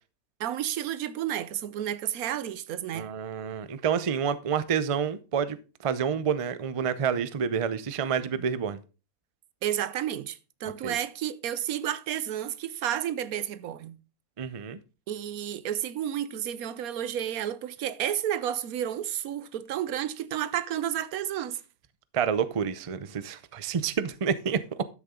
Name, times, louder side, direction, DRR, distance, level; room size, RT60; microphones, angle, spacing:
voice 1, 0.4-3.1 9.6-14.0 15.1-21.6, right 11 dB, 80° right, 1.2 m, -31 dB
voice 2, 2.9-5.6 5.8-8.8 10.8-11.0 14.4-14.8 22.1-24.8, right 7 dB, 45° right, 0.4 m, -28 dB
12.0 x 6.6 x 3.7 m
omnidirectional pair, 1.5 m